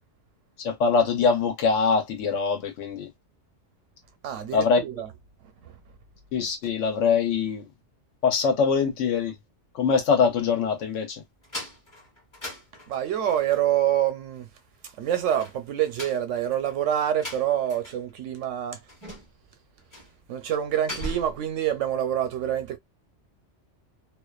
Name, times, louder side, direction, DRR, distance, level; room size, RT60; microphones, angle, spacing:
voice 1, 0.6-3.1 4.5-4.8 6.3-7.7 8.2-9.3 9.7-11.2, left 5 dB, 80° left, 1.1 m, -23 dB
voice 2, 4.2-5.1 5.4-5.8 12.9-14.5 14.8-18.8 20.3-22.8, right 10 dB, 80° right, 0.9 m, -26 dB
sound 1, 11.4-13.4 15.2-18.1 18.3-18.4 18.9-19.5 19.9-20.2 20.5-21.5, equal, 25° left, 0.9 m, -39 dB
2.4 x 2.2 x 2.3 m
omnidirectional pair, 1.2 m